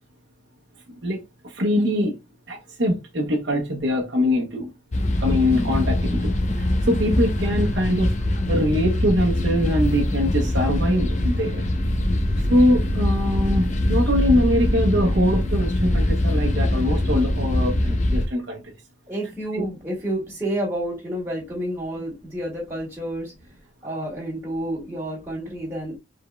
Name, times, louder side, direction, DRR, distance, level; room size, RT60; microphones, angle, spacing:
voice 1, 1.5-2.2 2.5-4.7 5.2-8.1 8.5-11.6 12.5-18.6 19.5-19.6, left 1 dB, 65° right, 0.9 m, -23 dB
sound 1, 4.9-18.3, left 1 dB, 40° left, 0.7 m, -23 dB
sound 2, 9.2-17.9, left 2 dB, 35° right, 0.9 m, -40 dB
voice 2, 19.1-23.3 23.8-26.0, right 1 dB, 15° right, 1.9 m, -29 dB
5.0 x 3.7 x 2.2 m
head